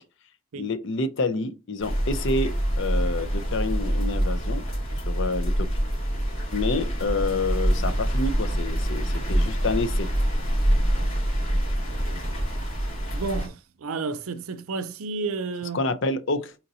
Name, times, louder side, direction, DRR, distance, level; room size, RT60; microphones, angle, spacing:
voice 1, 0.5-4.6 5.1-5.7 6.5-10.1 15.7-16.6, left 3 dB, 60° left, 0.5 m, -28 dB
sound 1, 1.8-13.5, equal, 80° left, 2.7 m, -25 dB
voice 2, 13.1-15.8, right 4 dB, 85° right, 0.5 m, -31 dB
4.3 x 4.0 x 2.7 m
head